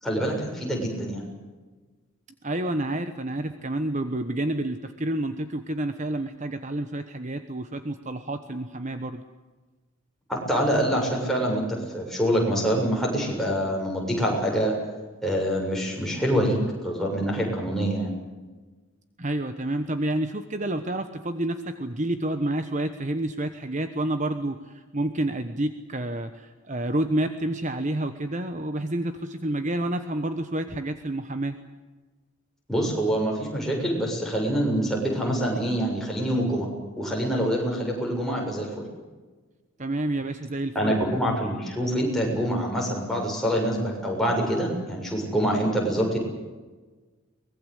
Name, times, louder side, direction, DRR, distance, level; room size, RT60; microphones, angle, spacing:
voice 1, 0.0-1.2 10.3-14.8 15.2-16.6 16.8-18.1 32.7-36.7 37.0-38.7 40.8-46.2, equal, ahead, -2 dB, 7.1 m, -25 dB
voice 2, 2.4-9.2 19.2-31.6 39.8-40.9, right 1 dB, 35° right, 9 dB, 1.1 m, -29 dB
24.0 x 21.0 x 8.2 m, 1.3 s
head